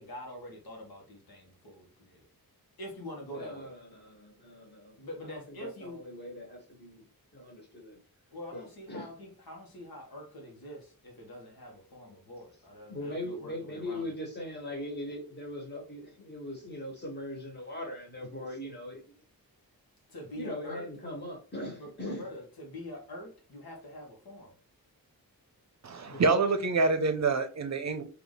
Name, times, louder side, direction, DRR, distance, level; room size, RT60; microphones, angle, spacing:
voice 1, 0.0-2.3 2.8-3.7 5.0-6.1 8.3-14.1 20.1-20.9 21.8-24.5, left 1 dB, 80° left, 1.4 m, -45 dB
voice 2, 3.3-5.0 5.2-7.0 7.3-8.0 8.5-9.1 12.9-19.0 20.4-22.3 26.0-26.3, left 1 dB, 30° left, 1.6 m, -40 dB
voice 3, 25.8-28.0, right 3 dB, 50° right, 0.6 m, -26 dB
4.0 x 2.9 x 3.2 m
wide cardioid pair, 130°, 36 cm